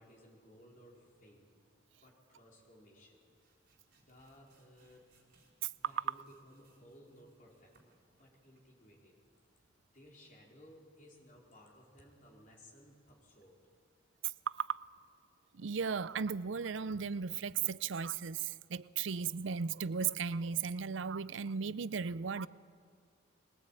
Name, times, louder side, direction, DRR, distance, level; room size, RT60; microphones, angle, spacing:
voice 1, 0.0-1.5 2.0-3.2 4.0-5.1 5.8-7.8 8.1-9.2 9.9-13.6, equal, 45° left, 4.6 m, -59 dB
sound 1, 3.1-8.8, right 3 dB, 50° right, 4.1 m, -72 dB
voice 2, 14.2-14.9 15.5-22.5, right 6 dB, 85° right, 0.5 m, -36 dB
22.5 x 19.0 x 9.0 m
head